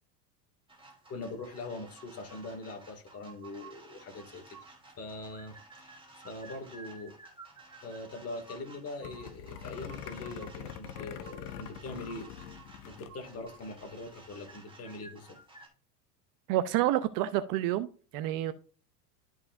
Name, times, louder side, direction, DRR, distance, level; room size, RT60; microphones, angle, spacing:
sound 1, 0.7-15.7, right 3 dB, 10° right, 2.8 m, -53 dB
voice 1, 1.1-4.6 5.0-5.9 6.2-7.2 7.8-12.3 12.8-15.4, left 2 dB, 30° left, 2.2 m, -42 dB
sound 2, 9.0-13.2 13.5-13.6 13.8-14.1, left 9 dB, 75° left, 1.2 m, -44 dB
voice 2, 16.5-17.9 18.1-18.5, right 13 dB, 45° right, 0.6 m, -28 dB
12.5 x 4.7 x 2.6 m
supercardioid pair, 115°, 48 cm